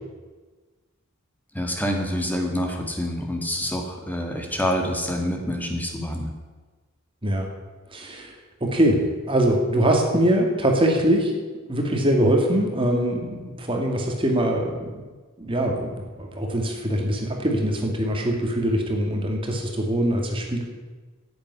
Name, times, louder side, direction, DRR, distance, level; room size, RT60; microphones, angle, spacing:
voice 1, 1.5-6.3, equal, 10° left, 2 dB, 1.9 m, -27 dB
voice 2, 7.9-8.3 8.6-9.0 9.3-11.3 11.7-14.9 15.4-15.9 16.2-20.6, right 1 dB, 25° right, 1 dB, 2.3 m, -22 dB
10.5 x 8.7 x 9.8 m, 1.3 s
head